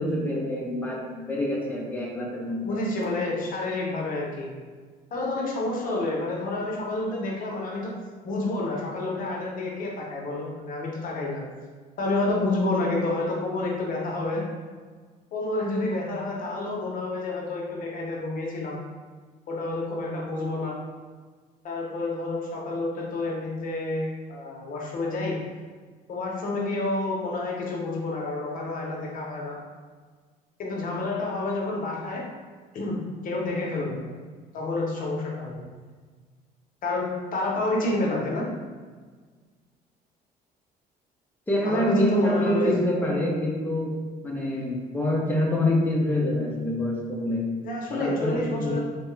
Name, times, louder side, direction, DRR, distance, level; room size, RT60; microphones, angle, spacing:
voice 1, 0.0-2.7 41.5-43.9 44.2-47.4 47.9-48.8, left 1 dB, 10° left, -3 dB, 0.6 m, -26 dB
voice 2, 2.6-4.5 5.1-7.9 8.2-11.5 12.0-14.4 15.3-18.8 19.5-20.7 21.6-25.4 26.1-29.6 30.6-32.3 32.7-34.0 34.5-35.6 36.8-38.4 41.6-42.7 47.6-48.8, left 2 dB, 55° left, -2 dB, 0.8 m, -29 dB
2.9 x 2.2 x 3.1 m, 1.5 s
cardioid pair, 110°, 17 cm